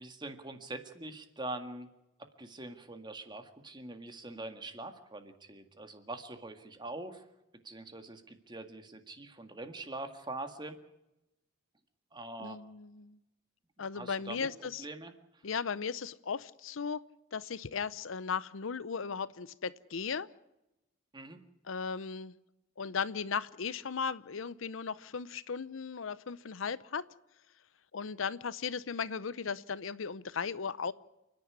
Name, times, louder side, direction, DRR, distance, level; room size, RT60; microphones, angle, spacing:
voice 1, 0.0-1.9 2.4-7.2 7.6-10.8 12.1-12.6 13.9-15.1 21.1-21.4, right 2 dB, 20° right, 7 dB, 1.9 m, -43 dB
voice 2, 12.4-13.2 13.8-14.9 15.4-17.0 17.3-20.3 21.7-22.4 22.8-27.1 27.9-30.9, left 6 dB, 80° left, 17 dB, 0.7 m, -36 dB
29.0 x 10.5 x 9.7 m, 0.94 s
head